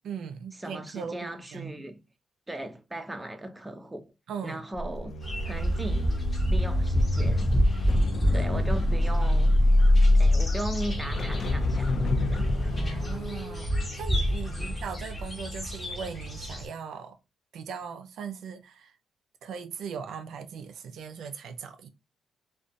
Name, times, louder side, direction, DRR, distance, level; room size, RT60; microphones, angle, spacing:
voice 1, 0.0-1.8 4.3-4.6 12.4-17.2 17.5-18.9 19.4-21.9, right 6 dB, 70° right, 0.4 m, -39 dB
voice 2, 0.6-2.0 2.5-4.0 4.4-5.1 5.4-6.1 6.5-7.5 8.3-9.5 10.1-12.5 14.6-14.7, right 1 dB, 10° right, 0.4 m, -38 dB
sound 1, 4.7-15.0 15.4-15.7, left 1 dB, 60° left, 0.4 m, -26 dB
sound 2, 5.2-16.7, equal, 25° left, 0.9 m, -29 dB
2.4 x 2.2 x 2.5 m
cardioid pair, 90°, 0 cm